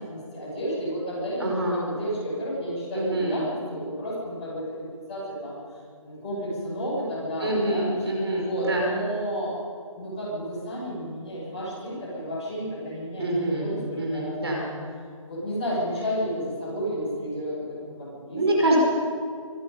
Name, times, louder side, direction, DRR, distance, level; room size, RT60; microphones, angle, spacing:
voice 1, 0.0-3.4 3.7-5.6 6.0-7.9 8.3-9.6 9.9-14.6 15.2-18.4, equal, 15° left, -9 dB, 7.0 m, -32 dB
voice 2, 1.4-1.8 2.9-3.4 7.4-8.9 13.2-14.6 18.3-18.8, right 1 dB, 50° right, -2 dB, 5.4 m, -26 dB
25.0 x 11.0 x 9.7 m, 2.2 s
figure-of-eight pair, 180°, 17 cm